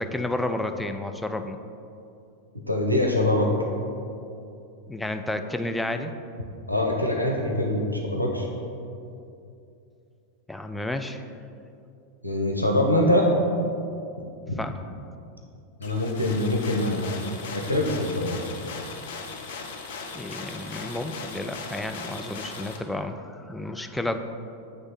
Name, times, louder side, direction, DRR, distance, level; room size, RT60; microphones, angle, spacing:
voice 1, 0.0-1.6 4.9-6.1 10.5-11.3 14.6-14.8 20.1-24.2, left 1 dB, 5° left, 6 dB, 0.3 m, -31 dB
voice 2, 2.7-3.5 6.7-8.5 12.2-13.3 15.8-17.2 17.5-18.4, left 1 dB, 90° right, 0 dB, 0.7 m, -23 dB
sound 1, 15.8-22.8, left 4 dB, 60° left, 0.6 m, -38 dB
8.5 x 3.2 x 4.5 m, 2.6 s
figure-of-eight pair, 90°, 0 cm